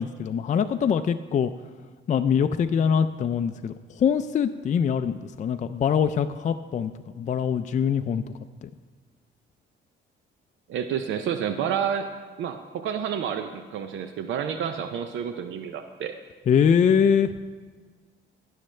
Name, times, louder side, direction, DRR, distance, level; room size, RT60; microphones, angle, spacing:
voice 1, 0.0-1.5 2.1-8.2 8.6-8.7 16.5-17.3, left 7 dB, 40° left, 8 dB, 0.4 m, -23 dB
voice 2, 10.7-12.0 12.4-16.2, right 8 dB, 75° right, 8 dB, 0.5 m, -29 dB
16.5 x 6.5 x 3.3 m, 1.4 s
cardioid pair, 90°, 20 cm